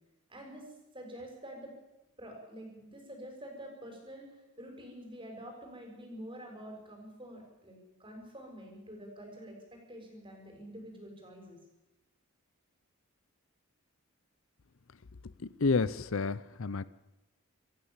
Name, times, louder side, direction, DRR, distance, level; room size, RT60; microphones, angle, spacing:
voice 1, 0.3-0.7 0.9-1.7 2.2-11.6, equal, 20° right, 2 dB, 6.5 m, -47 dB
voice 2, 15.6-16.8, left 4 dB, 60° left, 17 dB, 0.6 m, -29 dB
26.5 x 15.0 x 7.4 m, 1.0 s
head